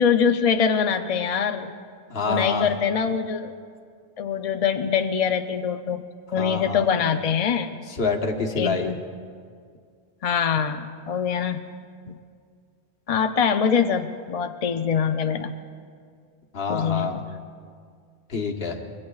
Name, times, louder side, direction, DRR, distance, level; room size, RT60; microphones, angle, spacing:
voice 1, 0.0-1.7 2.3-3.5 4.2-6.0 6.3-7.7 8.6-9.0 10.2-11.7 12.1-12.2 13.1-15.5 16.7-17.1, left 7 dB, 45° left, 7 dB, 0.5 m, -23 dB
voice 2, 2.1-2.7 6.4-6.9 7.9-8.9 16.5-17.2 18.3-18.8, left 4 dB, 60° left, 2 dB, 1.4 m, -27 dB
25.0 x 22.5 x 2.4 m, 2.1 s
omnidirectional pair, 1.1 m